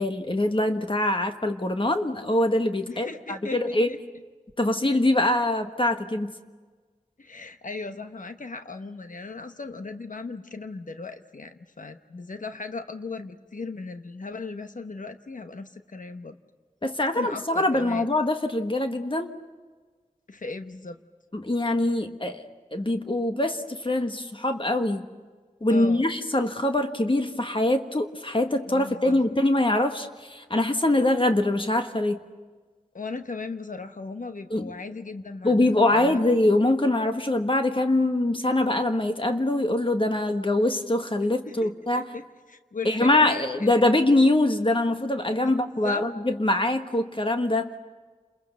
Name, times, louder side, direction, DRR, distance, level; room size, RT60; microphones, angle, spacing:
voice 1, 0.0-3.9 4.6-6.3 16.8-19.3 21.3-22.4 22.7-25.1 25.6-32.2 34.5-34.7 35.4-42.1 42.8-47.7, left 1 dB, 40° left, 6 dB, 1.5 m, -23 dB
voice 2, 2.9-4.0 7.2-16.4 17.1-18.1 20.3-21.0 25.7-26.0 28.7-29.2 32.9-36.2 41.5-41.7 42.0-43.7 45.4-46.1, left 3 dB, 80° left, 8 dB, 1.0 m, -37 dB
30.0 x 22.0 x 6.9 m, 1.4 s
wide cardioid pair, 50°, 13 cm